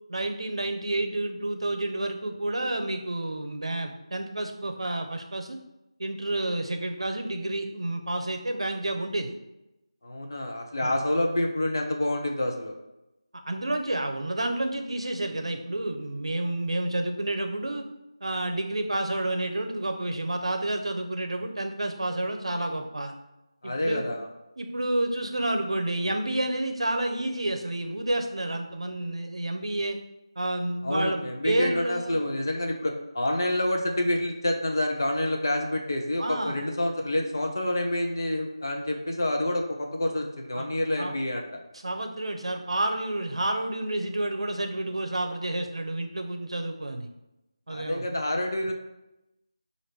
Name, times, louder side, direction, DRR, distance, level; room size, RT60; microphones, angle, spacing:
voice 1, 0.1-5.6 6.0-9.3 10.8-10.9 13.5-17.8 18.2-23.1 23.6-24.1 24.6-30.0 30.4-32.2 36.2-36.6 40.6-40.7 41.0-41.1 41.8-47.1 47.7-48.0, right 1 dB, 75° right, 5 dB, 0.7 m, -30 dB
voice 2, 10.0-12.8 23.6-24.3 30.8-41.5 47.7-48.7, left 1 dB, 40° left, 2 dB, 0.6 m, -28 dB
5.8 x 2.5 x 3.4 m, 0.94 s
figure-of-eight pair, 180°, 3 cm